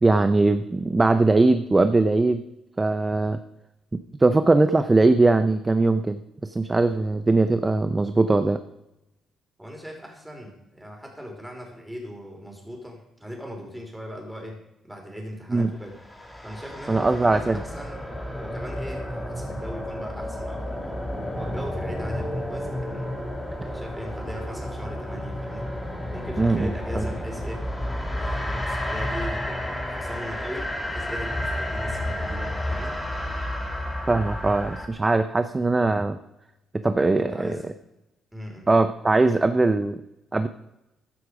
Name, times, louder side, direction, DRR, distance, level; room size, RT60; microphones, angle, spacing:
voice 1, 0.0-2.4 2.8-3.4 4.2-8.6 15.5-15.7 16.9-17.6 26.4-27.1 34.1-36.2 36.8-37.6 38.7-40.0 40.3-40.5, right 2 dB, 20° right, 10 dB, 0.8 m, -21 dB
voice 2, 9.6-14.6 14.8-16.0 16.4-21.0 21.3-23.1 23.6-25.7 26.1-27.6 28.1-32.9 37.2-37.7 38.3-38.7, equal, 5° right, 1 dB, 4.8 m, -39 dB
sound 1, 15.9-34.9, left 1 dB, 10° left, 2.7 m, -31 dB
15.0 x 11.0 x 5.1 m, 0.93 s
cardioid pair, 90°, 0 cm